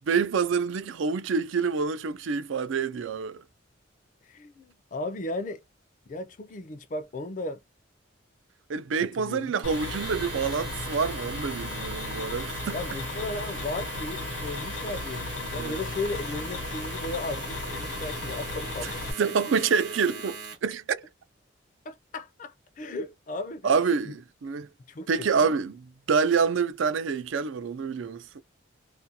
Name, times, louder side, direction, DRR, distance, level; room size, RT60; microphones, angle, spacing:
voice 1, 0.1-3.4 8.7-12.8 15.6-15.8 18.8-18.9 19.2-21.0 23.6-24.7 25.1-28.4, right 5 dB, 80° right, 0.4 m, -27 dB
voice 2, 4.2-5.6 6.1-7.6 9.0-9.5 12.7-19.7 21.9-23.7 24.0-24.1 24.9-25.5, left 2 dB, 40° left, 0.4 m, -36 dB
sound 1, 9.6-19.1, left 3 dB, 85° left, 0.8 m, -35 dB
Domestic sounds home sounds, 9.6-20.7, right 5 dB, 60° right, 0.9 m, -40 dB
2.4 x 2.2 x 2.8 m
head